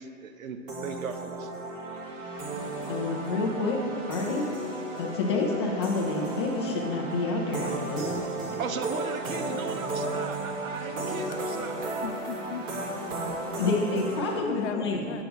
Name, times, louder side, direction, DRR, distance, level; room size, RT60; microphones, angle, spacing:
voice 1, 0.0-1.6 8.6-11.9 13.5-13.7, right 5 dB, 85° right, 7 dB, 0.8 m, -37 dB
sound 1, 0.7-14.4, right 2 dB, 70° right, 1.5 m, -34 dB
voice 2, 2.9-3.8 4.1-4.4 5.0-8.3 11.0-11.1 13.6-15.2, left 3 dB, 20° left, 0 dB, 0.5 m, -28 dB
voice 3, 12.0-13.5 14.3-15.2, left 6 dB, 60° left, 8 dB, 0.7 m, -38 dB
6.8 x 5.8 x 5.2 m, 2.4 s
hypercardioid pair, 160°, 39 cm